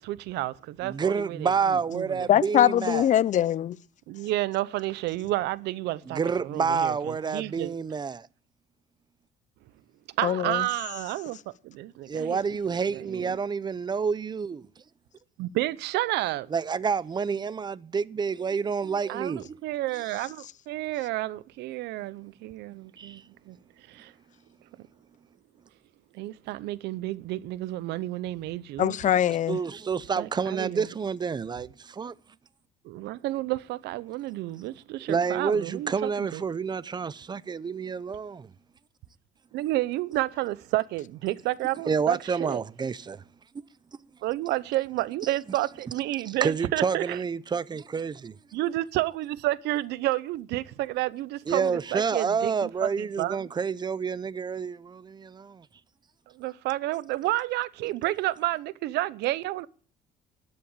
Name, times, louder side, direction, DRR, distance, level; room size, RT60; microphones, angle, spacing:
voice 1, 0.0-2.3 4.1-7.8 10.2-11.4 11.6-12.4 12.9-13.4 15.4-16.5 19.1-23.6 23.9-24.1 26.1-29.0 30.2-30.9 32.8-36.4 39.5-42.6 44.2-47.2 48.5-53.4 56.3-59.7, right 16 dB, 85° right, 0.7 m, -31 dB
voice 2, 0.8-3.1 6.1-8.3 12.1-14.7 16.5-19.6 23.0-23.2 29.5-32.1 35.1-38.5 41.9-43.2 45.5-45.6 46.4-48.4 51.5-55.6, right 5 dB, 25° right, 0.6 m, -29 dB
voice 3, 2.3-3.8 10.2-10.7 28.8-29.6, left 11 dB, 45° left, 0.5 m, -22 dB
13.0 x 7.7 x 8.8 m
cardioid pair, 110°, 17 cm